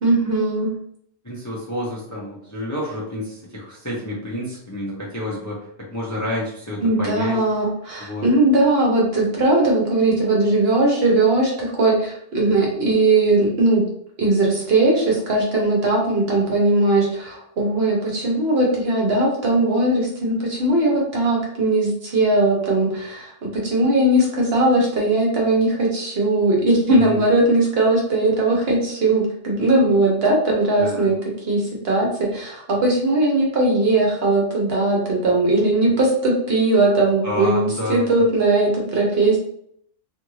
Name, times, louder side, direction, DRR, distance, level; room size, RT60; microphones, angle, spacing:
voice 1, 0.0-0.7 6.8-13.8 14.2-31.2 31.5-39.4, right 2 dB, 60° right, -2 dB, 1.0 m, -19 dB
voice 2, 1.2-7.4 8.0-8.3 27.0-27.2 30.8-31.1 37.2-38.0, left 1 dB, 20° left, -5 dB, 0.5 m, -29 dB
2.6 x 2.5 x 3.0 m, 0.68 s
omnidirectional pair, 1.3 m